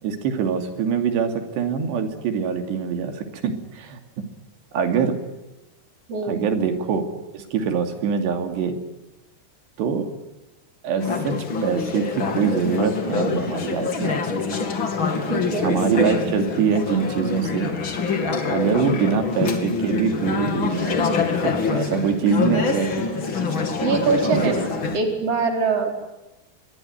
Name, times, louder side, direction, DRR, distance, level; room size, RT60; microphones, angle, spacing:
voice 1, 0.0-4.2 4.7-5.2 6.2-7.0 7.3-8.8 9.8-10.1 10.8-14.2 15.6-17.7 18.5-21.0 21.4-23.1 24.3-24.5 24.8-24.9, right 7 dB, 90° right, 6 dB, 4.8 m, -24 dB
voice 2, 6.1-6.5 15.3-15.7 21.7-22.1 23.8-24.7 24.9-25.9, right 4 dB, 35° right, 4 dB, 5.2 m, -23 dB
Conversation / Chatter, 11.0-25.0, left 4 dB, 35° left, 2.5 m, -25 dB
25.5 x 22.5 x 9.5 m, 1.0 s
omnidirectional pair, 4.8 m